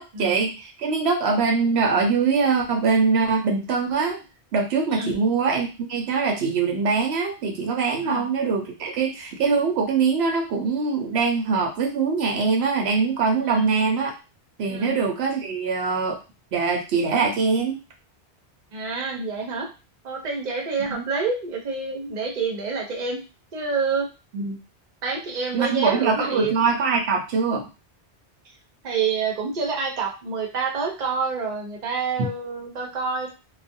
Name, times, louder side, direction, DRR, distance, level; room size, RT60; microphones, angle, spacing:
voice 1, 0.0-4.2 4.5-14.1 14.6-16.2 16.5-17.8 20.9-21.0 24.3-24.6 25.5-27.7 32.2-32.3, right 5 dB, 85° right, 2 dB, 0.9 m, -23 dB
voice 2, 18.7-19.7 20.0-23.2 23.5-24.1 25.0-26.5 28.8-33.3, right 4 dB, 50° right, 1 dB, 0.8 m, -27 dB
2.4 x 2.1 x 2.6 m, 0.29 s
omnidirectional pair, 1.1 m